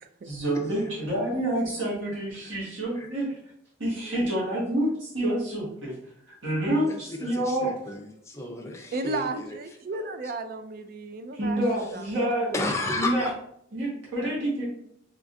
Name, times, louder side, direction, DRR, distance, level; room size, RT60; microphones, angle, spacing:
voice 1, 0.2-3.4 3.8-6.0 6.3-7.7 11.3-12.6 13.0-13.3 13.7-14.7, right 1 dB, 80° right, -6 dB, 1.4 m, -28 dB
voice 2, 6.9-9.6 9.9-10.3 12.5-13.3, left 2 dB, 15° left, 2 dB, 0.5 m, -33 dB
voice 3, 8.9-11.6 11.9-12.4, right 3 dB, 45° right, 9 dB, 0.3 m, -34 dB
3.6 x 3.2 x 2.6 m, 0.71 s
head